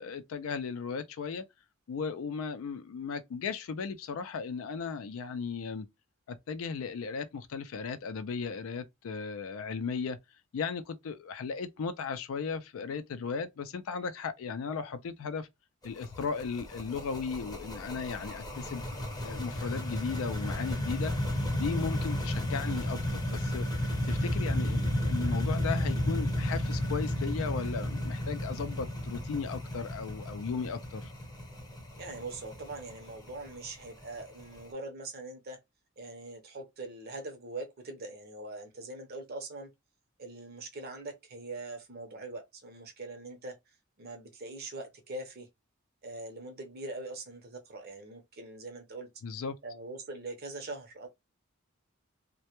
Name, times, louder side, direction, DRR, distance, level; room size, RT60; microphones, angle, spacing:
voice 1, 0.0-1.4 1.9-5.9 6.3-10.2 10.5-15.5 15.8-18.8 19.2-21.1 21.5-23.7 24.1-31.1 49.2-49.6, left 5 dB, 70° left, 0.4 m, -36 dB
sound 1, 15.8-34.6, left 1 dB, 20° left, 0.7 m, -33 dB
voice 2, 32.0-35.6 36.0-39.7 40.2-43.6 44.0-45.5 46.0-49.1 49.6-51.1, right 2 dB, 45° right, 0.6 m, -42 dB
2.1 x 2.1 x 2.8 m
head